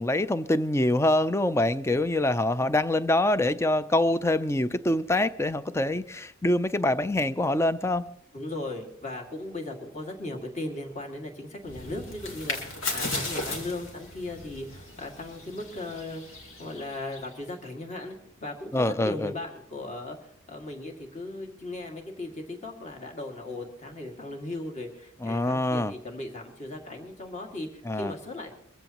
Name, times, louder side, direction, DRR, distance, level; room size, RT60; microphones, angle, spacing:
voice 1, 0.0-8.1 18.7-19.3 25.2-25.9 27.8-28.1, left 1 dB, 15° left, 0.5 m, -25 dB
voice 2, 8.3-16.2 16.6-28.6, left 2 dB, 35° left, 2.2 m, -37 dB
sound 1, 11.6-17.4, left 2 dB, 80° left, 2.8 m, -36 dB
23.0 x 15.0 x 3.0 m
head